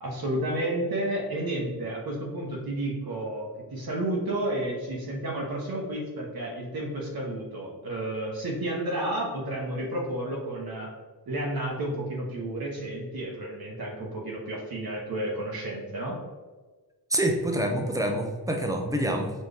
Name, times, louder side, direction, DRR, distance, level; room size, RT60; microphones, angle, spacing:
voice 1, 0.0-10.9 11.3-16.2, right 1 dB, 65° right, -3 dB, 1.1 m, -31 dB
voice 2, 17.1-19.3, right 1 dB, 10° right, 2 dB, 0.7 m, -26 dB
4.2 x 3.1 x 3.4 m, 1.3 s
cardioid pair, 80°, 39 cm